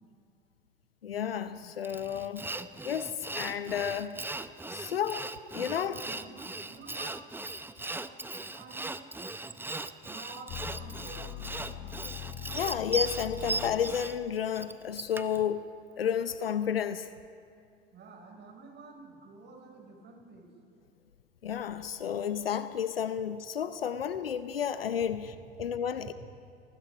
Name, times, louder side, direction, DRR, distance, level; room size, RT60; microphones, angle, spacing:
voice 1, 1.0-2.5 2.8-4.2 4.7-5.3 5.5-6.0 12.5-15.7 16.0-17.1 21.4-25.3 25.6-26.1, left 8 dB, 80° left, 12 dB, 0.8 m, -31 dB
Sawing, 1.8-15.4, right 2 dB, 5° right, 0.8 m, -38 dB
voice 2, 5.8-7.2 7.8-9.1 10.0-12.1 17.9-20.5 25.1-25.2 26.1-26.2, right 3 dB, 35° right, 2 dB, 6.1 m, -50 dB
sound 1, 10.5-14.3, left 10 dB, 40° left, 1.8 m, -42 dB
28.5 x 19.5 x 5.0 m, 2.4 s
figure-of-eight pair, 70°, 29 cm